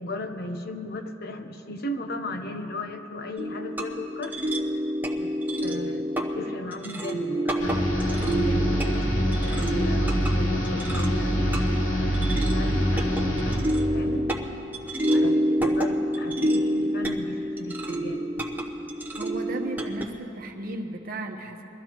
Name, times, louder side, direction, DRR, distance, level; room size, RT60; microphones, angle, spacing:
voice 1, 0.0-4.4 5.2-5.3 5.6-14.3 15.0-18.2, left 2 dB, 55° left, 6 dB, 0.8 m, -36 dB
sound 1, 3.4-20.0, equal, 10° right, 0.9 m, -28 dB
sound 2, 7.6-13.9, equal, 75° left, 2.8 m, -25 dB
voice 2, 19.2-21.6, right 1 dB, 50° right, 3 dB, 1.1 m, -35 dB
22.5 x 14.0 x 3.0 m, 2.9 s
head